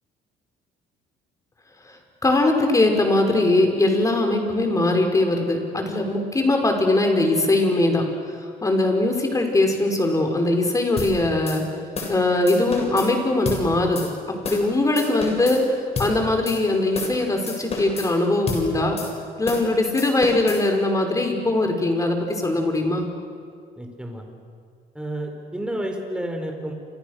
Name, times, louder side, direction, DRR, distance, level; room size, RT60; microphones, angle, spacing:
voice 1, 2.2-8.0 8.6-11.7 12.1-15.7 16.0-19.0 19.4-23.1, left 2 dB, 20° left, 3 dB, 5.5 m, -21 dB
sound 1, 11.0-11.1 11.5-11.6 12.0-12.2 12.5-13.1 13.5-13.6 14.0-14.1 14.4-14.7 15.0-15.6 16.0-16.1 16.5-16.6 16.9-17.2 17.5-18.1 18.5-18.6 19.0-19.1 19.5-19.7 20.0-20.6, left 4 dB, 40° left, 7.3 m, -30 dB
voice 2, 23.8-24.2 24.9-26.7, right 1 dB, 5° right, 3 dB, 4.9 m, -30 dB
29.5 x 27.5 x 6.7 m, 2.2 s
cardioid pair, 110°, 17 cm